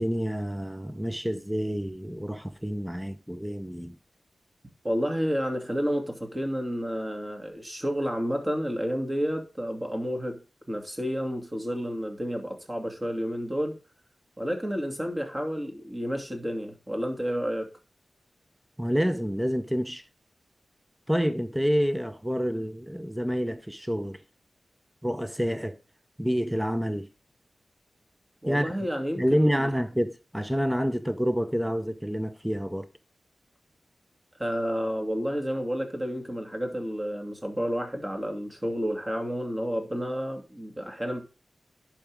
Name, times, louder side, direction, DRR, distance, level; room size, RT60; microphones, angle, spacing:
voice 1, 0.0-3.9 18.8-20.0 21.1-24.2 25.0-25.8 26.2-27.1 28.5-28.8 29.2-32.9, equal, 5° right, 0.7 m, -28 dB
voice 2, 4.8-10.4 10.7-13.8 14.4-17.7 28.4-29.6 34.4-41.2, equal, 25° right, 2.5 m, -30 dB
10.5 x 4.9 x 3.6 m
cardioid pair, 45°, 0 cm